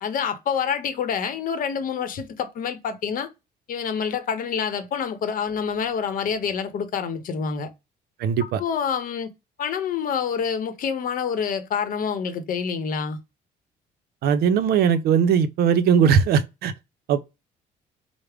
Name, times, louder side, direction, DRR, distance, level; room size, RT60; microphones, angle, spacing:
voice 1, 0.0-3.3 3.7-7.7 8.6-9.3 9.6-13.2, left 7 dB, 55° left, 0.8 m, -27 dB
voice 2, 8.2-8.6 14.2-16.7 17.1-17.3, right 7 dB, 70° right, 0.5 m, -19 dB
4.7 x 2.1 x 3.3 m
cardioid pair, 110°, 17 cm